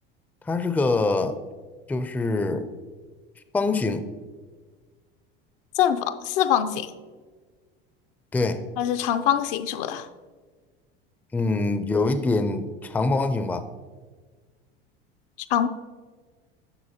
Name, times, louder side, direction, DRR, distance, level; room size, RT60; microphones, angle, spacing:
voice 1, 0.5-1.4 1.9-2.7 3.5-4.1 8.3-8.6 11.3-13.6, left 3 dB, 5° left, 10 dB, 0.4 m, -24 dB
voice 2, 5.8-6.9 8.8-10.1 15.5-15.7, left 10 dB, 65° left, 9 dB, 0.6 m, -23 dB
9.7 x 6.7 x 2.8 m, 1.4 s
hypercardioid pair, 85°, 29 cm